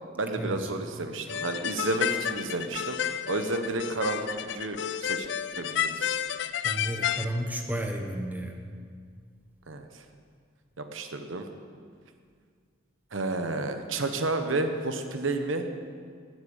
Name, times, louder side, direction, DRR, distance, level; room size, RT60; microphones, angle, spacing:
voice 1, 0.2-3.0 3.3-5.3 5.6-6.1 9.7-9.8 10.8-11.5 13.1-15.8, right 2 dB, 75° right, 7 dB, 1.1 m, -31 dB
sound 1, 1.3-7.3, left 9 dB, 65° left, 0.5 m, -31 dB
voice 2, 6.6-8.6, right 1 dB, 10° right, 3 dB, 1.1 m, -32 dB
12.0 x 8.4 x 8.8 m, 2.1 s
head